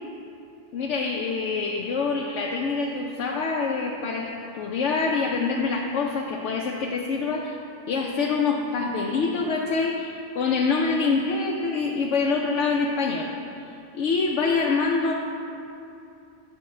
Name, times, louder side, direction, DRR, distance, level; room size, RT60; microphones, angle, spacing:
voice 1, 0.7-7.6 7.9-13.3 13.9-15.1, left 4 dB, 75° left, -1 dB, 1.0 m, -25 dB
8.5 x 7.5 x 4.3 m, 2.7 s
omnidirectional pair, 1.2 m